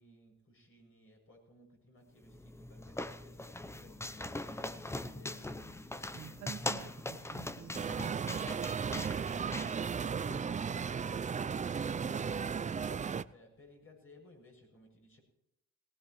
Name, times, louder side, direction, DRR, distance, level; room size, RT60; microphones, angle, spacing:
voice 1, 0.0-6.4 10.6-15.2, left 2 dB, 45° left, 7.3 m, -60 dB
sound 1, 2.2-10.4, left 1 dB, 10° left, 0.7 m, -42 dB
voice 2, 6.1-10.0, right 9 dB, 70° right, 1.3 m, -51 dB
sound 2, 7.7-13.2, right 6 dB, 25° right, 0.5 m, -35 dB
19.0 x 18.5 x 3.2 m
cardioid pair, 90°, 30 cm